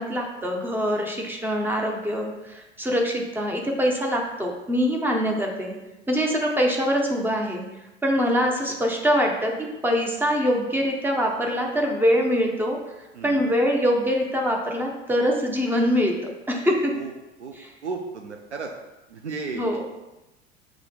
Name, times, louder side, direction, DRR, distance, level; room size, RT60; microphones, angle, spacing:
voice 1, 0.0-5.8 6.1-7.6 8.0-12.8 13.2-16.1 16.5-16.9 17.6-17.7 19.5-19.8, equal, 5° right, 1 dB, 0.5 m, -24 dB
voice 2, 8.4-8.8 13.1-13.5 16.9-17.1 17.4-17.6 17.8-18.7 19.1-19.8, right 4 dB, 85° right, 3 dB, 0.5 m, -34 dB
6.1 x 3.4 x 2.2 m, 1.0 s
figure-of-eight pair, 75°, 34 cm